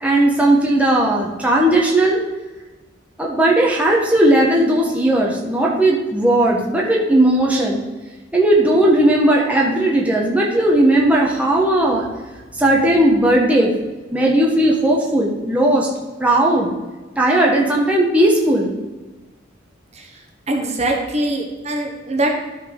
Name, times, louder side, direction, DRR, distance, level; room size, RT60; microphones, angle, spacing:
voice 1, 0.0-2.2 3.2-7.8 8.3-12.1 12.5-13.7 14.1-15.9 16.2-16.7 17.2-18.7, right 1 dB, 5° right, -3 dB, 1.2 m, -16 dB
voice 2, 20.5-22.3, right 1 dB, 35° right, 1 dB, 1.3 m, -22 dB
12.5 x 4.4 x 5.3 m, 1.2 s
head